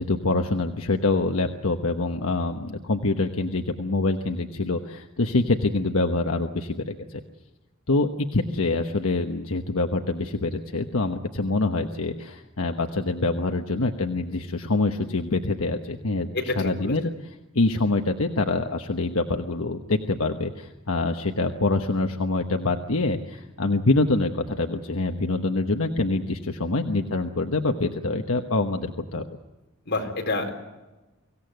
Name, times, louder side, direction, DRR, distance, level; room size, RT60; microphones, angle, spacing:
voice 1, 0.0-7.2 7.9-16.3 16.6-17.1 17.5-29.3, left 2 dB, 85° left, 5 dB, 1.2 m, -25 dB
voice 2, 16.3-16.9 29.9-30.5, left 2 dB, 55° left, 2 dB, 4.3 m, -28 dB
24.5 x 16.5 x 9.2 m, 1.1 s
head